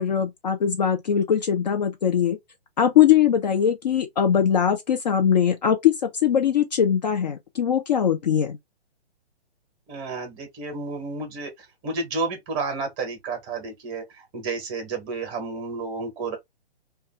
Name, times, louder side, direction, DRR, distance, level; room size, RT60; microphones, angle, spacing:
voice 1, 0.0-2.4 2.8-8.6, left 8 dB, 45° left, 0.4 m, -21 dB
voice 2, 9.9-11.5 11.8-16.4, right 3 dB, 25° right, 0.9 m, -31 dB
2.4 x 2.3 x 2.7 m
figure-of-eight pair, 135°, 32 cm